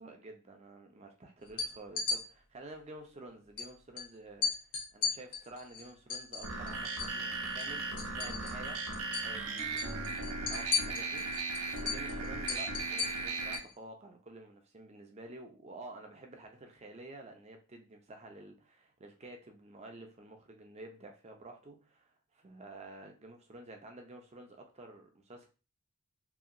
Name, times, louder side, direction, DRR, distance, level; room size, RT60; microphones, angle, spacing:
voice 1, 0.0-4.5 4.9-25.5, right 2 dB, 30° right, 0.5 m, -50 dB
sound 1, 1.5-2.2 3.6-3.7 4.0-4.1 4.4-7.2 7.5-8.7 8.9-9.3 9.6-13.7, left 5 dB, 85° left, 0.9 m, -35 dB
sound 2, 6.4-13.6, right 3 dB, 85° right, 0.6 m, -37 dB
2.8 x 2.7 x 2.5 m
head